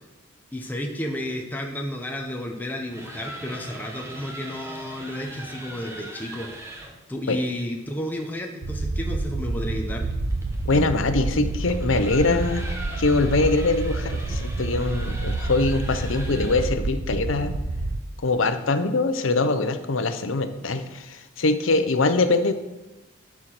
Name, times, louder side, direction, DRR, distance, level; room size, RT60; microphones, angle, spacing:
voice 1, 0.5-6.5 7.1-10.1 14.3-14.4, left 1 dB, 10° left, 1 dB, 0.8 m, -32 dB
sound 1, 2.8-7.0 9.6-16.8, right 1 dB, 15° right, 1.2 m, -40 dB
sound 2, 8.6-18.0, right 2 dB, 85° right, 0.7 m, -28 dB
voice 2, 10.6-12.7 13.0-17.5 18.2-22.5, left 3 dB, 75° left, 9 dB, 0.8 m, -23 dB
11.5 x 4.9 x 6.0 m, 1.0 s
head